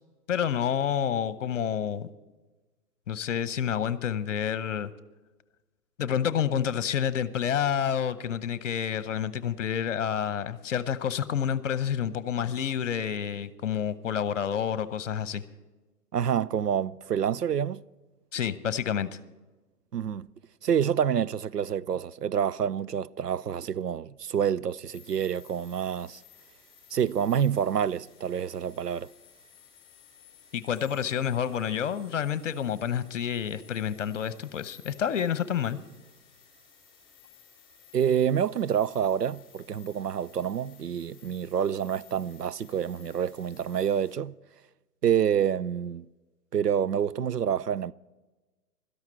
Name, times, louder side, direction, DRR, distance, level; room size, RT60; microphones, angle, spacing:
voice 1, 0.3-2.1 3.1-4.9 6.0-15.4 18.3-19.1 30.5-35.8, left 8 dB, 50° left, 1.0 m, -29 dB
voice 2, 16.1-17.8 19.9-20.3 20.6-26.2 26.9-29.1 37.9-44.3 45.0-46.1 46.5-47.9, right 8 dB, 85° right, 0.6 m, -27 dB
sound 1, 24.9-44.1, left 7 dB, 10° left, 4.8 m, -56 dB
16.5 x 13.0 x 4.5 m
figure-of-eight pair, 125°, 47 cm